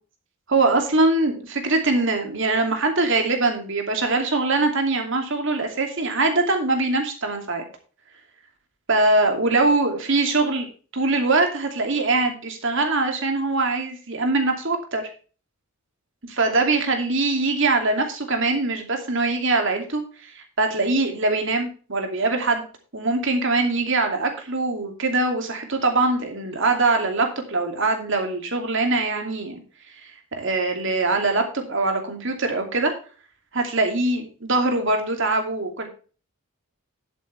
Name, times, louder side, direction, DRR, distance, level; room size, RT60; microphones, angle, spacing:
voice 1, 0.5-7.6 8.9-10.7 10.9-15.1 16.3-22.7 22.9-29.6 30.3-32.9 33.5-35.9, right 3 dB, 60° right, 4 dB, 2.6 m, -22 dB
11.0 x 8.4 x 3.3 m, 0.37 s
head